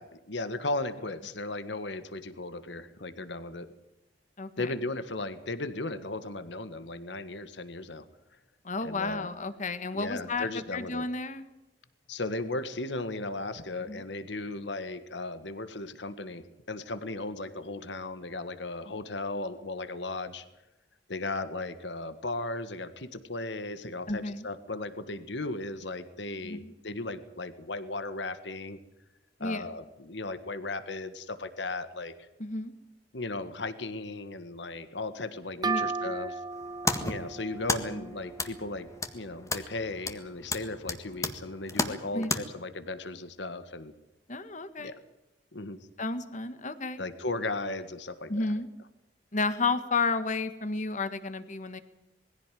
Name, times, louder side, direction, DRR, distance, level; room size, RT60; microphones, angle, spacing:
voice 1, 0.0-3.7 4.6-8.0 8.8-9.3 9.9-11.1 12.1-20.4 21.1-28.8 29.4-32.3 33.1-36.4 37.0-38.9 39.1-43.9 44.8-45.0 45.5-45.8 47.0-48.3, left 2 dB, 75° left, 11 dB, 1.7 m, -36 dB
voice 2, 4.4-4.7 8.6-11.4 13.8-14.0 24.1-24.5 26.4-26.7 29.4-29.6 32.4-32.7 35.6-35.9 37.9-38.1 42.1-42.4 44.3-45.0 46.0-47.0 48.3-48.7 49.3-51.8, left 3 dB, 45° left, 11 dB, 1.7 m, -32 dB
sound 1, 35.6-39.2, right 4 dB, 25° right, 0.8 m, -36 dB
sound 2, 36.5-42.4, left 2 dB, 20° left, 1.7 m, -34 dB
21.5 x 16.0 x 9.3 m, 0.93 s
head